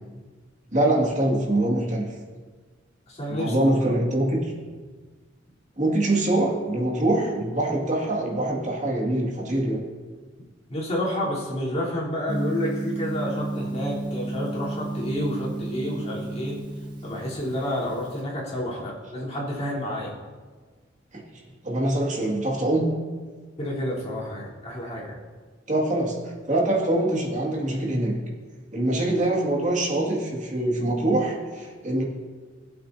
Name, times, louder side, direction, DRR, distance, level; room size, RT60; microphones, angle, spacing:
voice 1, 0.7-2.1 3.3-4.5 5.8-9.8 18.7-18.8 19.1-19.2 21.1-21.2 21.6-22.9 25.7-28.1 28.7-32.0, right 1 dB, 40° right, -2 dB, 2.2 m, -24 dB
voice 2, 3.1-3.5 10.7-16.6 17.0-20.1 23.6-25.2, equal, 35° left, -7 dB, 3.6 m, -30 dB
Gong, 12.3-18.1, right 2 dB, 25° right, 1.3 m, -32 dB
18.5 x 8.3 x 2.8 m, 1.4 s
head